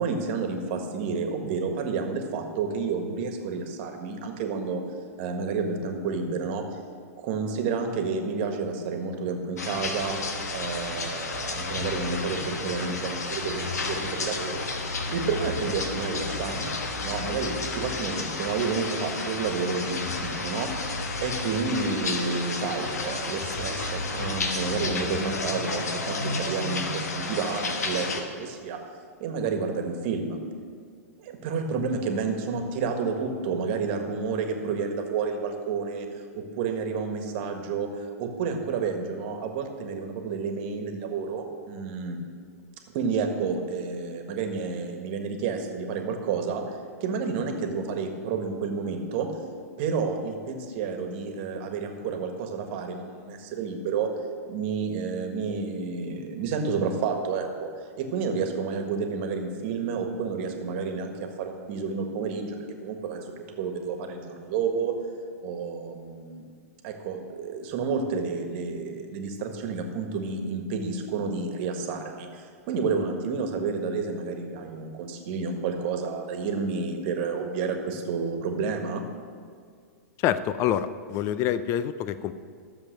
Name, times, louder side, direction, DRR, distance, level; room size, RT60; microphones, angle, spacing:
voice 1, 0.0-4.8 5.2-6.6 7.2-10.2 10.5-14.6 15.1-16.7 17.0-20.8 21.2-28.8 29.2-30.4 31.2-42.2 42.9-46.6 47.0-49.3 49.8-54.1 54.5-57.7 58.0-64.9 65.4-66.4 66.8-79.0, right 5 dB, 45° right, 5 dB, 1.6 m, -30 dB
sound 1, 9.6-28.2, left 3 dB, 80° left, 1.4 m, -31 dB
voice 2, 80.2-82.3, left 10 dB, 35° left, 13 dB, 0.5 m, -26 dB
13.0 x 7.2 x 6.6 m, 2.1 s
hypercardioid pair, 120°, 9 cm